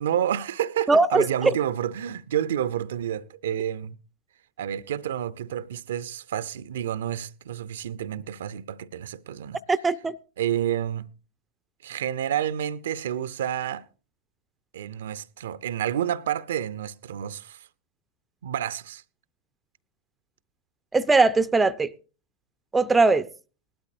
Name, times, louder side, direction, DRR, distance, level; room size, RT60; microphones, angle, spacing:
voice 1, 0.0-4.0 4.6-9.6 10.4-11.1 11.8-13.8 14.7-17.7 18.4-19.0, right 10 dB, 60° right, 0.5 m, -29 dB
voice 2, 0.9-1.3 9.7-10.2 20.9-21.9 22.7-23.3, right 3 dB, 10° right, 0.5 m, -20 dB
19.5 x 12.0 x 2.6 m
figure-of-eight pair, 90°, 0 cm